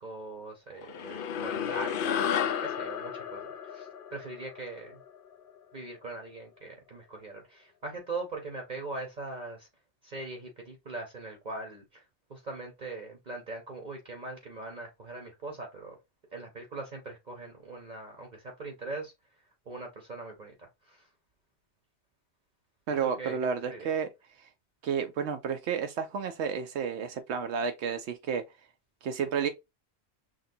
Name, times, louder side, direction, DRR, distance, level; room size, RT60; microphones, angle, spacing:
voice 1, 0.0-2.3 2.6-5.0 5.7-9.7 10.0-12.0 12.3-16.0 16.3-19.1 19.7-21.1 23.0-23.4 23.7-23.9, right 2 dB, 45° right, 1.0 m, -41 dB
sound 1, 0.8-5.5, left 8 dB, 60° left, 0.6 m, -33 dB
voice 2, 22.9-24.1 24.4-24.5 24.8-28.4 29.0-29.5, right 6 dB, 80° right, 0.8 m, -31 dB
6.3 x 2.2 x 2.6 m
omnidirectional pair, 1.1 m